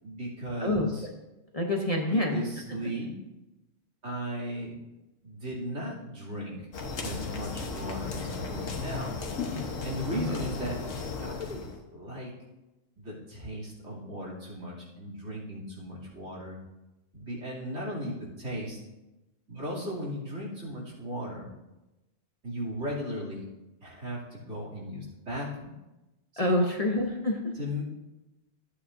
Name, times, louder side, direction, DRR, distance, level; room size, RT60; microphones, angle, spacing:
voice 1, 0.0-1.1 2.1-3.1 4.0-4.7 5.2-6.6 7.0-9.1 9.8-10.8 11.2-11.6 11.9-12.3 13.0-16.6 17.1-18.8 19.5-21.5 22.4-23.4 23.8-25.7 27.6-27.8, equal, 65° right, -5 dB, 3.1 m, -36 dB
voice 2, 0.6-0.9 1.5-2.4 2.7-2.8 10.1-10.4 26.4-27.5, left 1 dB, 35° left, 0 dB, 0.9 m, -27 dB
sound 1, 6.7-11.8, left 4 dB, 80° left, 1.5 m, -35 dB
14.5 x 8.3 x 2.6 m, 1.0 s
omnidirectional pair, 1.3 m